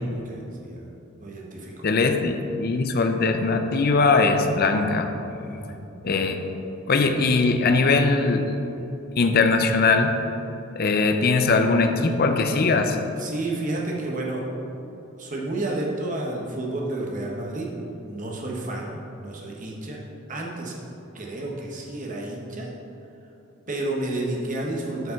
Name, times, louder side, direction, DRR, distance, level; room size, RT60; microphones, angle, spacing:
voice 1, 0.1-0.9 1.2-1.8 5.4-5.8 13.2-14.5 15.2-17.7 18.0-20.0 20.3-20.7 21.1-22.7 23.7-25.1, right 2 dB, 35° right, -2 dB, 1.2 m, -31 dB
voice 2, 1.8-5.1 6.0-6.4 6.9-8.4 9.2-10.2 10.8-13.0, left 3 dB, 45° left, 6 dB, 0.5 m, -20 dB
7.7 x 5.3 x 5.8 m, 3.0 s
head